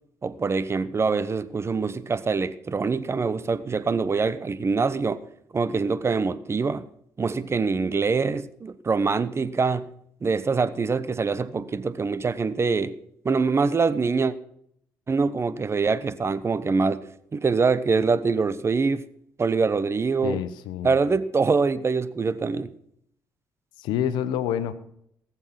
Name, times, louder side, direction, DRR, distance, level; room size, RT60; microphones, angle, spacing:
voice 1, 0.2-5.2 5.5-6.9 7.2-9.8 10.2-13.0 13.2-14.3 15.1-17.0 17.3-19.0 19.4-20.4 20.8-22.7, right 4 dB, 35° right, 1.0 m, -24 dB
voice 2, 20.2-20.9 23.8-24.7, left 10 dB, 90° left, 1.0 m, -27 dB
18.5 x 7.3 x 5.9 m
supercardioid pair, 65°, 7 cm